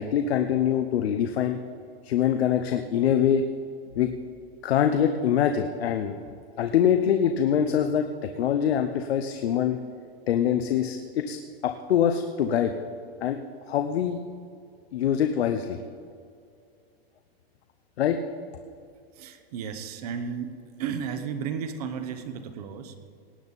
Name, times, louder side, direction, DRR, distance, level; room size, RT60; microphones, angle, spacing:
voice 1, 0.0-1.6 2.0-3.4 4.0-4.1 4.6-6.1 6.6-9.8 10.3-11.4 11.6-12.7 13.2-13.4 13.7-14.2 14.9-15.8 18.0-18.2, left 9 dB, 80° left, 6 dB, 0.8 m, -24 dB
voice 2, 19.1-20.5 20.8-23.1, right 7 dB, 40° right, 9 dB, 0.9 m, -33 dB
18.5 x 9.0 x 4.1 m, 2.4 s
supercardioid pair, 180°, 31 cm